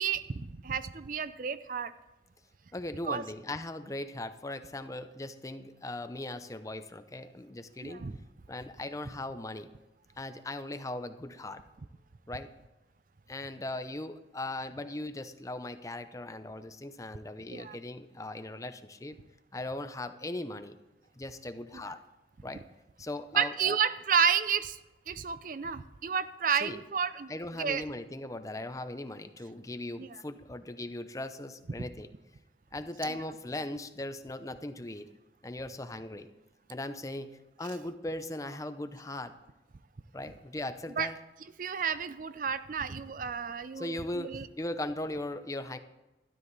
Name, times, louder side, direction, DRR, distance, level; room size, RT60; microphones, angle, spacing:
voice 1, 0.0-1.9 3.0-3.2 7.8-8.2 17.5-17.8 23.3-24.8 25.1-27.3 27.6-27.8 30.0-30.1 31.8-31.9 41.0-41.1 41.6-44.5, right 7 dB, 45° right, 13 dB, 0.5 m, -31 dB
voice 2, 2.7-8.1 8.5-9.7 10.2-11.6 12.3-12.5 13.3-19.2 19.5-20.8 21.1-22.0 22.4-22.6 23.0-23.8 26.6-26.8 27.3-32.1 32.7-35.1 35.4-36.3 36.7-37.3 37.6-39.3 40.1-41.2 43.8-45.8, left 1 dB, 20° left, 9 dB, 0.6 m, -39 dB
12.5 x 12.0 x 4.0 m, 1.0 s
head